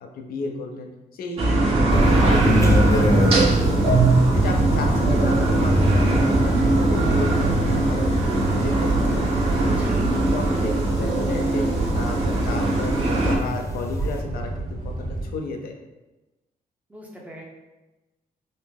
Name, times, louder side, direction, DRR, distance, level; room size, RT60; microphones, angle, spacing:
voice 1, 0.0-6.6 6.8-9.2 9.4-9.7 10.3-11.7 11.9-15.7, left 3 dB, 80° left, 3 dB, 0.6 m, -33 dB
sound 1, 1.4-13.3, right 2 dB, 40° right, 1.1 m, -21 dB
sound 2, 1.7-15.3, right 1 dB, 65° right, 1.1 m, -26 dB
sound 3, 1.9-14.2, equal, 20° left, 0.5 m, -29 dB
voice 2, 9.6-10.4 16.9-17.4, right 1 dB, 10° right, -3 dB, 0.8 m, -39 dB
5.1 x 2.1 x 3.4 m, 1.1 s
cardioid pair, 125°, 15 cm